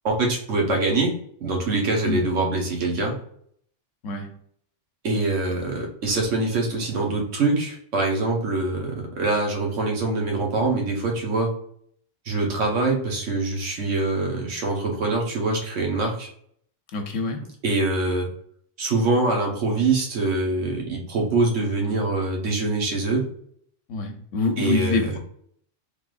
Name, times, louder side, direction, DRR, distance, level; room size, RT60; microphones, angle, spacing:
voice 1, 0.0-3.2 5.0-11.5 12.2-16.3 17.6-18.3 18.8-23.3 24.6-25.1, right 3 dB, 80° right, 1 dB, 1.4 m, -24 dB
voice 2, 4.0-4.4 16.9-17.5 23.9-25.2, left 3 dB, 85° left, 4 dB, 1.1 m, -26 dB
3.9 x 3.3 x 2.4 m, 0.64 s
omnidirectional pair, 1.3 m